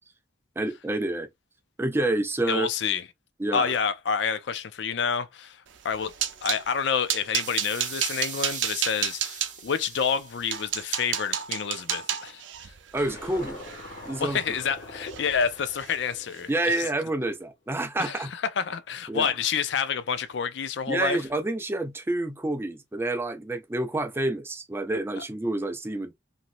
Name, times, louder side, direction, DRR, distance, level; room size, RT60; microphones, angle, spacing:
voice 1, 0.6-1.3 1.8-2.7 3.4-3.7 12.9-13.6 14.1-14.4 16.5-18.3 19.1-19.3 20.9-26.1, right 2 dB, 15° right, 0.4 m, -28 dB
voice 2, 2.5-3.1 3.5-5.6 5.8-6.1 6.4-12.7 14.2-16.8 18.0-21.2, left 6 dB, 70° left, 0.4 m, -28 dB
sound 1, 5.8-6.6 7.1-9.5 10.1-10.2 10.5-14.7 15.1-15.5 15.7-16.0 16.4-16.5, right 10 dB, 85° right, 0.5 m, -31 dB
sound 2, 7.3-11.4, right 6 dB, 40° right, 0.9 m, -40 dB
sound 3, 13.0-17.4, left 2 dB, 45° left, 1.4 m, -44 dB
3.0 x 2.6 x 2.5 m
head